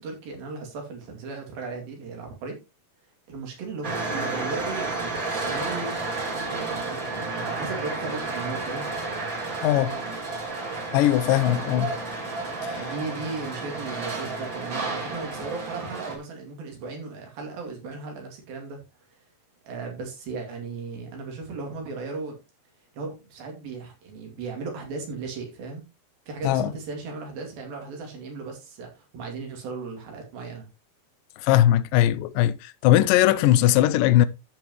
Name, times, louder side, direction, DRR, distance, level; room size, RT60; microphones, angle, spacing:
voice 1, 0.0-2.6 3.3-5.9 6.4-9.0 11.4-12.0 12.7-18.8 19.6-22.4 22.9-25.8 26.3-30.7, right 4 dB, 85° right, 4.4 m, -36 dB
sound 1, 3.8-16.2, right 3 dB, 35° right, 2.9 m, -31 dB
voice 2, 9.6-10.0 10.9-11.9 12.6-12.8 26.4-26.7 31.4-34.3, left 13 dB, 80° left, 2.2 m, -20 dB
13.5 x 6.0 x 3.0 m
omnidirectional pair, 4.1 m